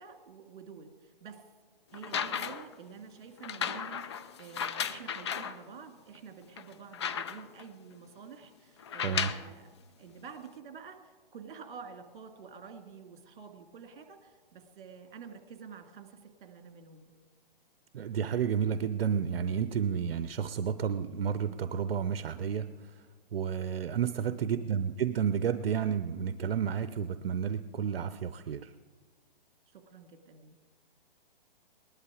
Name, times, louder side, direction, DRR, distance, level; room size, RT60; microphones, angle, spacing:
voice 1, 0.0-1.5 1.9-9.7 10.0-17.2 24.3-24.8 29.7-30.6, right 6 dB, 55° right, 5 dB, 2.2 m, -49 dB
sound 1, 1.9-2.7 3.4-5.6 6.1-6.2 6.6-7.6 8.8-9.5 10.5-10.6, left 7 dB, 30° left, 0.4 m, -35 dB
voice 2, 17.9-23.0 23.3-28.7, right 7 dB, 80° right, 11 dB, 0.7 m, -31 dB
19.5 x 11.5 x 4.9 m, 1.4 s
hypercardioid pair, 160°, 29 cm